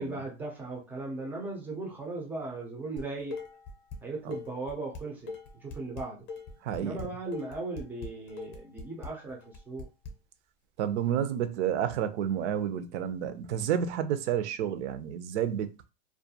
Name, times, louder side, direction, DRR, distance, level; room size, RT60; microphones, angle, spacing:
voice 1, 0.0-3.3 4.0-6.2 6.8-9.9, right 3 dB, 5° right, 0.3 m, -37 dB
Dishes pots and pans, 3.0-4.0 4.3-10.1, left 4 dB, 30° left, 0.6 m, -41 dB
voice 2, 6.6-7.0 10.8-15.9, right 9 dB, 70° right, 0.6 m, -30 dB
2.4 x 2.3 x 2.7 m
supercardioid pair, 140°, 37 cm